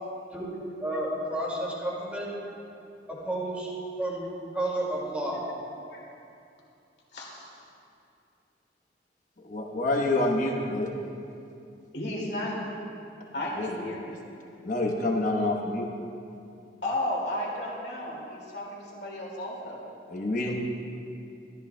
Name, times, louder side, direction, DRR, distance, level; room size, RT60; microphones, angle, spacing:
voice 1, 0.8-2.3 3.1-3.7 4.0-4.3 4.5-5.4 20.5-20.6, right 1 dB, 10° right, -5 dB, 2.2 m, -31 dB
voice 2, 7.1-7.5 11.9-12.7 13.3-14.1 16.8-19.8, left 1 dB, 65° left, -3 dB, 2.3 m, -33 dB
voice 3, 9.4-10.9 13.5-13.8 14.6-15.9 20.1-20.5, left 2 dB, 45° left, 0 dB, 1.1 m, -27 dB
14.0 x 13.5 x 2.2 m, 2.6 s
head